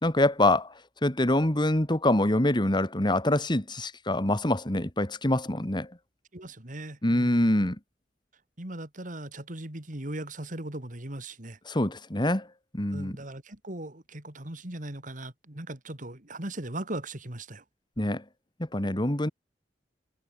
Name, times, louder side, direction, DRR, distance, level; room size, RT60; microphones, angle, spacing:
voice 1, 0.0-0.7 1.0-5.9 7.0-7.8 11.7-12.5 12.7-13.2 18.0-18.2 18.6-19.3, left 1 dB, 25° left, 2.3 m, -25 dB
voice 2, 6.3-7.5 8.6-11.6 12.9-17.6, right 1 dB, 45° right, 3.1 m, -38 dB
head